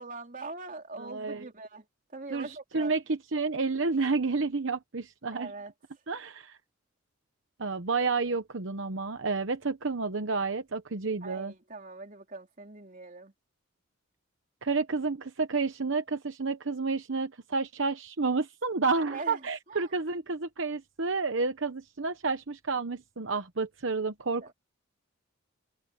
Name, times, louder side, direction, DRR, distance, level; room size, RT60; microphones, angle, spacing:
voice 1, 0.0-3.0 5.3-5.7 11.2-13.3 19.1-19.9 24.4-24.5, right 3 dB, 40° right, 3.5 m, -42 dB
voice 2, 1.0-1.5 2.3-5.5 6.1-6.6 7.6-11.5 14.6-24.5, right 4 dB, 65° right, 1.0 m, -30 dB
head